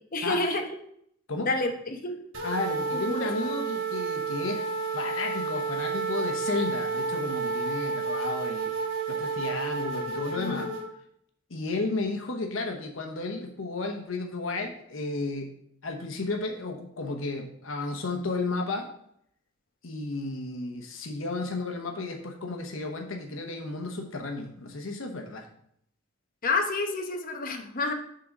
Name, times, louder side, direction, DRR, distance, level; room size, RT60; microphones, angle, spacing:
voice 1, 0.1-0.7 1.5-2.2 3.1-3.5 10.4-10.7 26.4-27.9, left 3 dB, 45° left, 4 dB, 1.0 m, -29 dB
sound 1, 2.3-10.8, right 4 dB, 85° right, 1.8 m, -31 dB
voice 2, 2.4-8.7 9.1-10.7 11.5-15.5 15.8-18.9 19.8-25.5, left 3 dB, 85° left, 2 dB, 1.0 m, -33 dB
6.8 x 3.9 x 6.0 m, 0.69 s
head